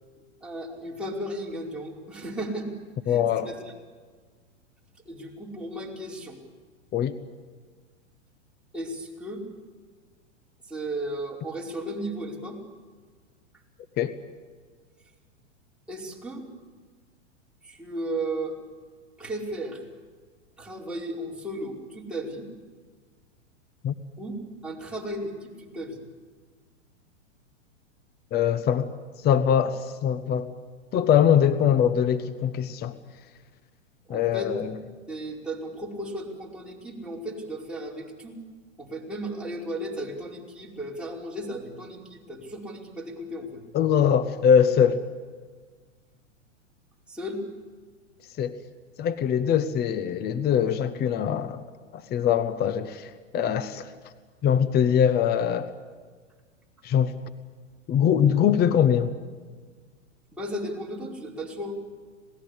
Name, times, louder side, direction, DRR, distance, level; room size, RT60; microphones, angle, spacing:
voice 1, 0.4-2.7 3.1-3.6 5.0-6.4 8.7-9.4 10.7-12.6 15.9-16.5 17.6-18.5 19.2-19.8 20.6-22.5 24.2-24.4 24.6-26.0 34.1-34.5 35.1-38.4 38.8-43.6 47.1-47.4 60.3-61.8, right 1 dB, 5° right, -4 dB, 5.0 m, -35 dB
voice 2, 3.1-3.5 6.9-7.2 14.0-14.2 23.8-23.9 28.3-30.5 30.9-33.0 34.1-34.8 43.7-45.0 48.4-48.6 49.0-51.6 51.9-53.9 54.4-55.7 56.8-57.1 57.9-59.2, left 8 dB, 25° left, 12 dB, 1.1 m, -22 dB
26.5 x 19.0 x 8.3 m, 1.5 s
hypercardioid pair, 115°, 37 cm